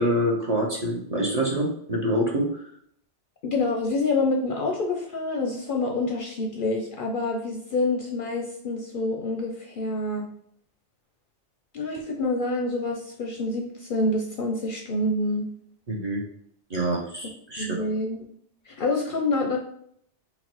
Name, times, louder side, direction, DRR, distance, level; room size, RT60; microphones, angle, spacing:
voice 1, 0.0-2.6 15.9-16.2 16.7-17.8, right 1 dB, 40° right, -2 dB, 0.6 m, -26 dB
voice 2, 3.4-10.3 11.7-15.5 17.6-18.2 18.7-19.6, left 2 dB, 60° left, 1 dB, 0.6 m, -27 dB
4.0 x 2.1 x 4.4 m, 0.66 s
omnidirectional pair, 1.2 m